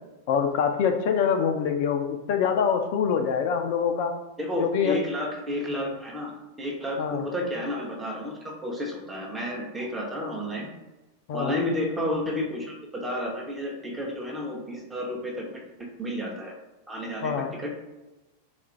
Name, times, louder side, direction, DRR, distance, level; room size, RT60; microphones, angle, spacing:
voice 1, 0.3-4.1 4.6-5.0 7.0-7.2 11.3-11.5 17.2-17.5, left 7 dB, 50° left, 5 dB, 0.4 m, -25 dB
voice 2, 4.4-6.3 6.6-10.7 11.3-15.6 16.0-16.5 16.9-17.3 17.6-17.7, left 1 dB, 10° right, -1 dB, 0.8 m, -31 dB
3.6 x 2.4 x 4.3 m, 1.1 s
figure-of-eight pair, 90°, 0 cm